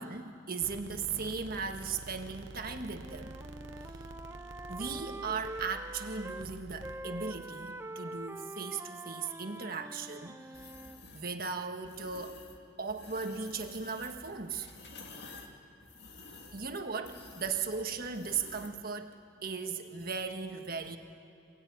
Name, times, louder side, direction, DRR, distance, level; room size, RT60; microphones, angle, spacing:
voice 1, 0.0-3.4 4.7-10.7 11.1-12.4 12.8-14.7 16.5-21.0, right 5 dB, 45° right, 5 dB, 1.6 m, -37 dB
sound 1, 0.6-7.4, right 2 dB, 65° right, 1.0 m, -48 dB
Wind instrument woodwind instrument, 3.0-6.5 6.8-11.0, right 2 dB, 10° right, 0.5 m, -44 dB
sound 2, 10.5-11.3 11.8-12.6 12.9-18.8, left 3 dB, 50° left, 2.3 m, -51 dB
27.5 x 16.5 x 9.5 m, 2.7 s
head